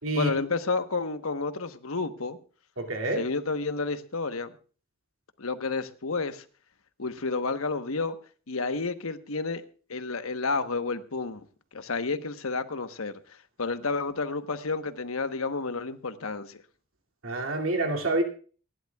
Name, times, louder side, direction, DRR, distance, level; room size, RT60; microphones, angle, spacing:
voice 1, 0.2-2.4 3.1-4.5 5.4-6.4 7.0-8.2 8.5-9.6 9.9-11.4 11.7-16.6, left 3 dB, 90° left, 1.2 m, -30 dB
voice 2, 2.8-3.2 17.2-18.2, right 2 dB, 75° right, 2.5 m, -27 dB
26.5 x 11.5 x 2.4 m
head